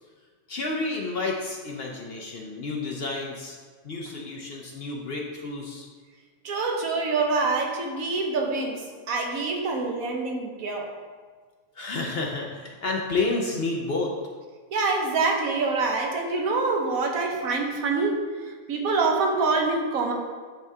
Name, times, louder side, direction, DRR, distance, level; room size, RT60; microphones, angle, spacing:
voice 1, 0.5-3.6 3.8-5.9 11.7-14.2, left 3 dB, 55° left, 0 dB, 0.7 m, -30 dB
voice 2, 6.4-10.9 14.7-20.1, right 3 dB, 75° right, 1 dB, 1.3 m, -26 dB
10.0 x 3.5 x 2.7 m, 1.5 s
omnidirectional pair, 1.5 m